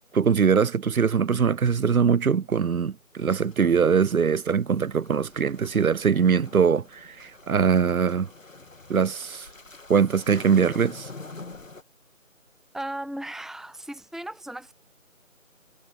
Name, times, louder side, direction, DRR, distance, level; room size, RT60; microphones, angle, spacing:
voice 1, 0.1-8.3 8.9-9.5 9.9-11.1, right 6 dB, 80° right, 0.7 m, -22 dB
sound 1, 3.2-11.8, left 3 dB, 65° left, 2.3 m, -46 dB
voice 2, 12.7-14.7, right 1 dB, ahead, 0.5 m, -36 dB
figure-of-eight pair, 170°, 42 cm